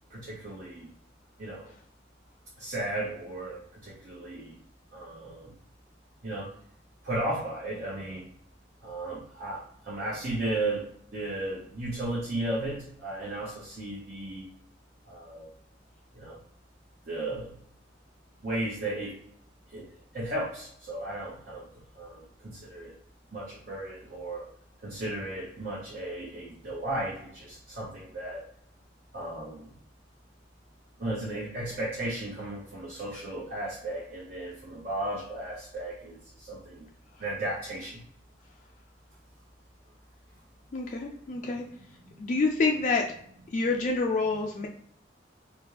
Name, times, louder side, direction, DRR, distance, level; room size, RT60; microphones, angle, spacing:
voice 1, 0.1-0.9 1.4-1.7 2.6-4.5 4.9-5.5 6.2-6.5 7.0-8.3 8.8-10.8 11.1-14.4 15.1-15.5 16.1-16.4 17.1-17.5 18.4-19.1 19.7-19.9 20.1-21.7 21.9-22.9 23.3-24.4 24.8-28.4 29.1-29.7 31.0-36.8 37.2-38.0, right 1 dB, 55° right, -6 dB, 1.0 m, -35 dB
voice 2, 40.7-41.6 42.2-43.0 43.5-44.7, left 3 dB, 40° left, 1 dB, 0.3 m, -27 dB
4.1 x 2.3 x 3.3 m, 0.67 s
head